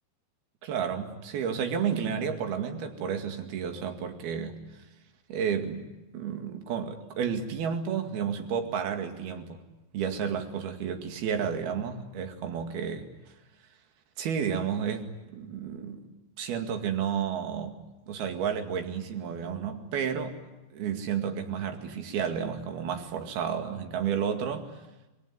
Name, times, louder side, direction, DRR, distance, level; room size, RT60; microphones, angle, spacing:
voice 1, 0.6-4.6 5.3-5.9 6.1-9.6 9.9-13.1 14.2-17.8 18.1-20.3 20.7-24.7, right 7 dB, 65° right, 5 dB, 4.0 m, -31 dB
27.5 x 21.5 x 9.5 m, 1.0 s
omnidirectional pair, 5.0 m